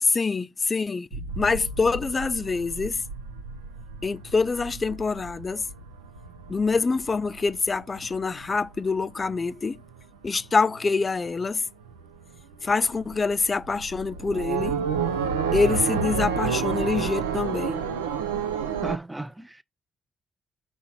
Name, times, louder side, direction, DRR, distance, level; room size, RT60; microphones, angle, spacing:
voice 1, 0.0-3.0 4.0-5.7 6.5-9.8 10.2-11.6 12.6-14.8 15.5-17.8, left 4 dB, 40° left, 0.5 m, -25 dB
sound 1, 1.1-10.0 10.3-11.1 11.4-11.5 11.8-19.0, right 6 dB, 90° right, 0.5 m, -31 dB
voice 2, 18.8-19.6, right 2 dB, 15° right, 0.6 m, -34 dB
6.0 x 4.0 x 4.2 m
hypercardioid pair, 40°, 0 cm